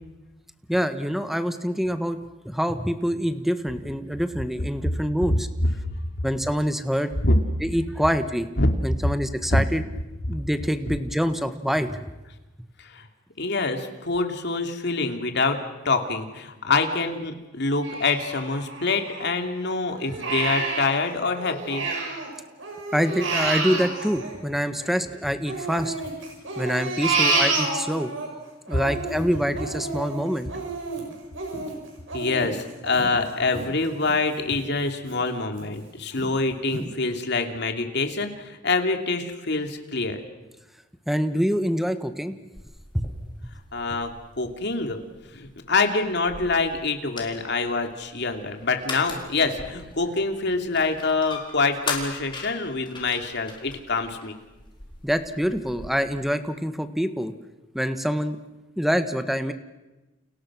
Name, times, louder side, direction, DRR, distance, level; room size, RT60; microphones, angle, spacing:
voice 1, 0.7-2.2 2.4-5.5 6.2-7.1 7.6-8.5 8.8-9.9 10.3-12.0 22.9-25.9 26.5-28.1 28.7-30.5 41.1-42.4 42.9-43.1 43.9-44.0 55.0-57.3 57.7-58.4 58.8-59.5, equal, ahead, 9 dB, 1.4 m, -25 dB
voice 2, 13.4-21.9 32.1-40.2 43.7-45.0 45.3-54.3, left 3 dB, 60° left, 5 dB, 2.8 m, -25 dB
Crying sobbing, 17.8-19.5 19.9-22.3 22.6-25.0 25.5-28.3 28.7-34.1 34.6-34.7 35.1-35.7 36.2-36.3 36.7-36.8, right 3 dB, 80° right, 7.6 m, -29 dB
sound 1, 42.6-55.9, left 4 dB, 25° left, 4.7 m, -40 dB
29.5 x 29.5 x 6.3 m, 1.1 s
head